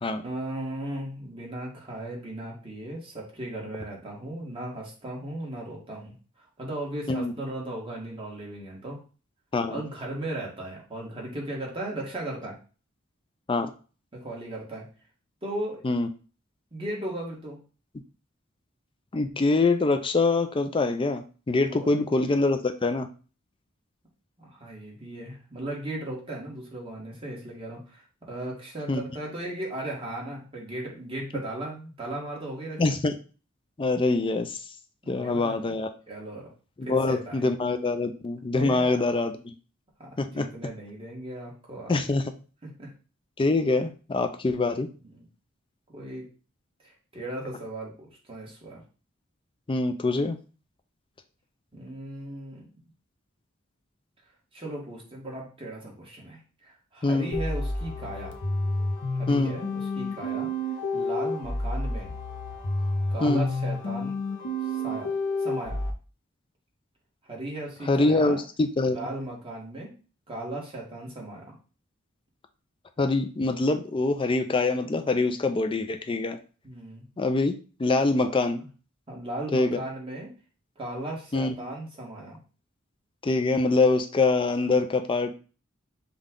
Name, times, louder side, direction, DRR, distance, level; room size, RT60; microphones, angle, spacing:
voice 1, 0.2-6.1 6.6-9.0 9.7-12.5 14.1-14.9 15.4-15.9 16.7-17.6 21.7-22.0 24.4-32.8 35.0-35.7 36.1-36.5 36.8-37.5 38.5-38.9 40.0-42.0 42.6-42.9 45.0-45.3 45.9-46.3 46.8-48.8 51.7-52.7 54.5-58.3 59.1-60.5 60.9-62.1 63.1-64.2 64.7-65.1 65.4-65.8 67.3-68.4 68.8-70.0 70.3-71.5 76.6-77.0 78.2-78.3 79.1-80.3 80.8-82.4, right 1 dB, 25° right, -2 dB, 1.4 m, -37 dB
voice 2, 19.1-23.1 28.9-29.0 32.8-33.1 33.8-34.6 35.1-35.9 36.8-39.5 40.2-40.5 41.9-42.2 43.4-44.9 49.7-50.4 57.0-57.3 59.3-59.6 63.2-63.5 67.9-69.0 73.0-76.4 77.2-77.5 77.8-78.6 79.5-79.8 81.3-81.6 83.2-85.3, left 3 dB, 25° left, 7 dB, 0.4 m, -24 dB
sound 1, 57.3-65.9, left 1 dB, 60° left, 0.7 m, -30 dB
5.4 x 2.3 x 3.7 m, 0.36 s
head